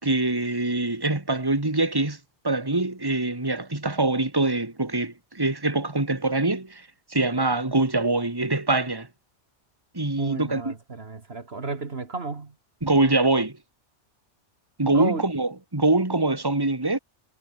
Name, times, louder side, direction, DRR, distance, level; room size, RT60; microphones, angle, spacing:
voice 1, 0.0-2.2 2.4-6.8 7.1-9.1 9.9-10.7 12.8-13.5 14.8-17.0, right 2 dB, 20° right, 2.3 m, -24 dB
voice 2, 10.2-12.5 14.8-15.2, right 3 dB, 60° right, 2.2 m, -33 dB
omnidirectional pair, 1.2 m